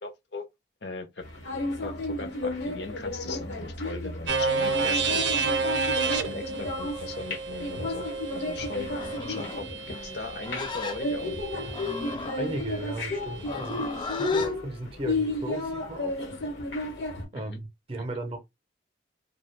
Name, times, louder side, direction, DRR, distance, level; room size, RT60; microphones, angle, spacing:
voice 1, 0.0-0.4 0.8-1.2 1.8-5.3 6.0-8.1 8.3-8.9 9.3-11.3 17.3-17.6, left 3 dB, 65° left, 0.6 m, -39 dB
sound 1, 1.2-17.2, left 2 dB, 85° left, 1.1 m, -33 dB
sound 2, 4.3-12.2, right 4 dB, 80° right, 0.4 m, -30 dB
Livestock farm animals working animals, 8.9-14.5, left 4 dB, 25° left, 0.3 m, -37 dB
voice 2, 12.4-13.9 14.2-16.2 17.3-18.4, right 1 dB, 30° right, 0.6 m, -35 dB
2.3 x 2.2 x 3.1 m
head